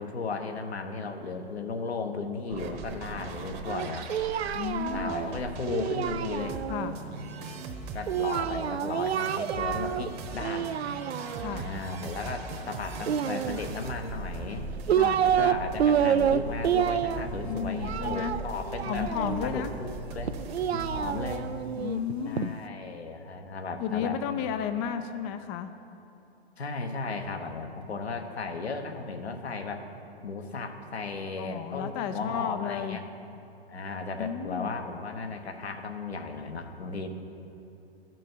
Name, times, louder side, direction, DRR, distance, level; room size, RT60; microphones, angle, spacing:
voice 1, 0.0-4.1 4.9-7.3 7.9-10.7 11.5-14.7 15.2-20.3 20.7-21.5 22.2-24.5 26.6-29.9 30.2-33.0 33.7-37.1, left 4 dB, 80° left, 5 dB, 1.1 m, -35 dB
sound 1, 2.5-21.4, right 3 dB, 35° right, 1.1 m, -40 dB
Singing, 3.7-6.9 8.1-10.1 10.4-11.6 13.0-14.0 14.6-15.5 15.8-19.5 20.2-22.5, right 9 dB, 80° right, 0.5 m, -28 dB
voice 2, 4.5-5.2 6.7-7.0 11.4-11.7 15.0-15.2 17.4-18.4 18.9-19.7 21.2-21.3 21.8-22.5 23.8-25.7 31.4-33.0 34.2-34.7, left 8 dB, 25° left, 9 dB, 0.4 m, -33 dB
15.0 x 6.1 x 4.5 m, 2.9 s
figure-of-eight pair, 110°, 31 cm